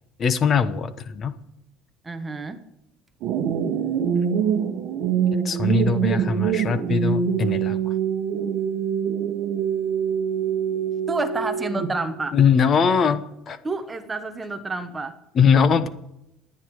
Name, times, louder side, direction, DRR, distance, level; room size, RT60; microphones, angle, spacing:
voice 1, 0.2-1.3 5.4-7.8 12.3-13.6 15.3-15.9, left 6 dB, 30° left, 1.0 m, -21 dB
voice 2, 2.0-2.6 11.1-12.4 13.6-15.2, right 3 dB, 15° right, 1.1 m, -29 dB
sound 1, 3.2-12.2, right 8 dB, 50° right, 1.4 m, -24 dB
27.5 x 9.7 x 4.8 m
cardioid pair, 175°, 0 cm